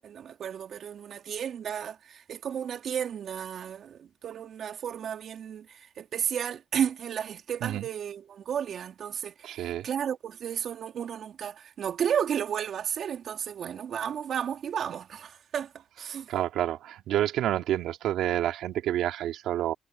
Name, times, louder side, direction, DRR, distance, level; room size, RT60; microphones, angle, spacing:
voice 1, 0.0-15.7 16.0-16.3, right 8 dB, 60° right, 4.1 m, -33 dB
voice 2, 9.4-9.9 16.3-19.7, right 12 dB, 85° right, 3.1 m, -29 dB
cardioid pair, 90°, 0 cm